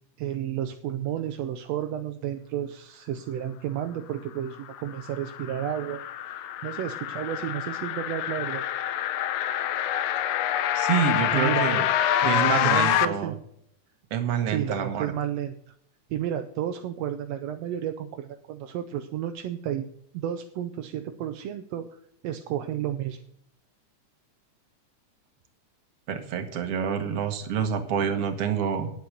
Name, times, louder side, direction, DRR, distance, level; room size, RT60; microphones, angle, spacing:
voice 1, 0.2-8.6 11.3-11.7 12.2-13.4 14.5-15.6 16.1-19.9 20.1-23.2, right 10 dB, 75° right, 7 dB, 1.6 m, -32 dB
sound 1, 4.7-13.1, left 11 dB, 75° left, 1.6 m, -26 dB
voice 2, 10.7-11.9 12.2-13.4 14.1-15.1 26.1-28.9, right 7 dB, 55° right, 8 dB, 2.1 m, -27 dB
9.7 x 8.3 x 6.6 m, 0.70 s
omnidirectional pair, 3.5 m